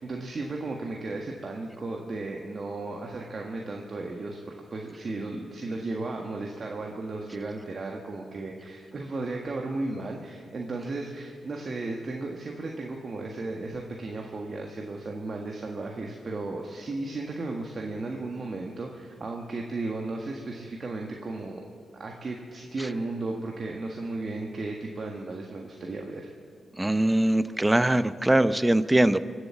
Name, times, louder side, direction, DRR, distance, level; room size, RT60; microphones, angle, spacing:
voice 1, 0.0-21.6 22.0-26.3, right 2 dB, 55° right, 0 dB, 1.7 m, -35 dB
voice 2, 26.8-29.2, right 1 dB, 15° right, 14 dB, 0.7 m, -22 dB
24.0 x 8.2 x 7.2 m, 2.3 s
supercardioid pair, 50°, 0 cm